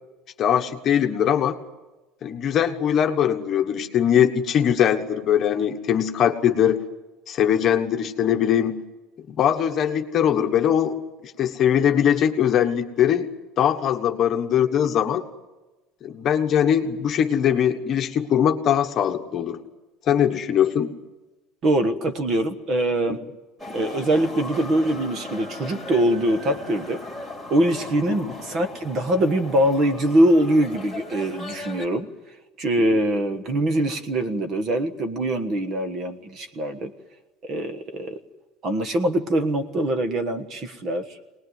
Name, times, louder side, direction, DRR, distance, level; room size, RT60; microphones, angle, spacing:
voice 1, 0.4-1.6 2.2-6.8 7.3-8.8 9.3-13.3 13.6-15.2 16.0-19.6 20.1-20.9 28.1-28.3 32.8-32.9, left 9 dB, 30° left, 5 dB, 1.3 m, -21 dB
voice 2, 21.6-23.2 23.7-27.0 27.5-32.1 32.6-36.9 37.4-38.2 38.6-41.2, right 1 dB, 30° right, 9 dB, 1.4 m, -23 dB
sound 1, 23.6-31.9, left 2 dB, 5° right, 3.2 m, -37 dB
23.5 x 19.5 x 9.6 m, 1.1 s
cardioid pair, 175°, 0 cm